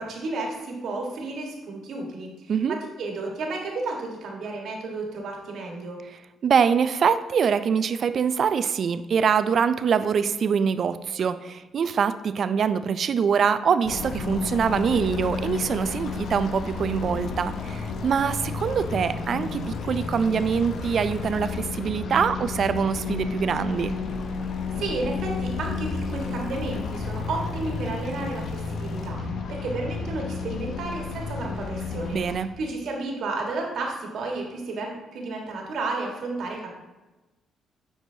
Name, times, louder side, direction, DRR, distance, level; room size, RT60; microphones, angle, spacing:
voice 1, 0.0-6.0 24.8-32.2 32.6-36.7, right 3 dB, 70° right, 0 dB, 1.4 m, -32 dB
voice 2, 6.4-23.9 32.1-32.5, right 6 dB, 55° right, 13 dB, 0.3 m, -24 dB
sound 1, 13.8-32.4, left 4 dB, 65° left, 0.7 m, -32 dB
9.0 x 4.6 x 2.7 m, 1.1 s
cardioid pair, 90°, 0 cm